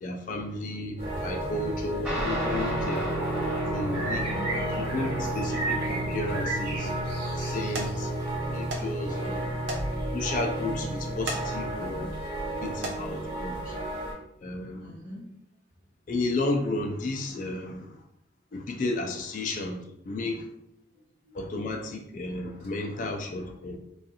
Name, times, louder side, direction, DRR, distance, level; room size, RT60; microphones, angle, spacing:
voice 1, 0.0-3.1 3.7-4.2 4.8-6.9 7.3-8.1 8.5-9.4 10.1-12.1 12.4-13.8 14.4-14.9 16.1-18.0 18.5-20.5 21.3-23.8, left 2 dB, 45° left, 2 dB, 0.3 m, -33 dB
sound 1, 1.0-14.1, right 2 dB, 45° right, 1.1 m, -33 dB
Guitar, 2.0-11.8, right 1 dB, 5° right, 0.6 m, -33 dB
voice 2, 4.1-4.5 9.2-9.5 14.3-15.3 20.0-20.4 20.9-21.4, left 1 dB, 70° right, -10 dB, 0.9 m, -46 dB
sound 2, 7.7-7.9 8.7-8.9 9.2-9.3 9.7-9.8 10.2-10.3 11.1-11.4 11.9-12.2 12.7-13.0 13.9-14.1 14.6-14.7, right 1 dB, 90° right, 0.5 m, -35 dB
2.4 x 2.3 x 2.7 m, 0.78 s
head